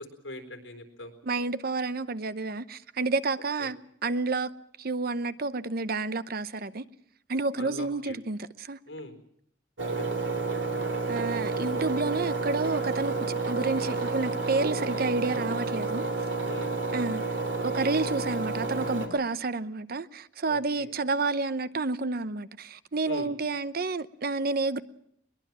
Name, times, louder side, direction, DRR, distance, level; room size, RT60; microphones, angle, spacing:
voice 1, 0.2-1.1 3.6-3.7 7.6-8.2 8.9-9.1 16.5-16.7 20.5-20.9 23.1-23.3, left 1 dB, 85° left, 4.1 m, -41 dB
voice 2, 1.2-4.5 4.8-6.8 7.3-8.8 11.1-13.2 13.5-16.0 16.9-17.2 17.6-24.8, right 3 dB, 55° right, 0.8 m, -30 dB
Engine, 9.8-19.1, right 3 dB, 90° right, 3.3 m, -30 dB
22.0 x 21.5 x 7.4 m
head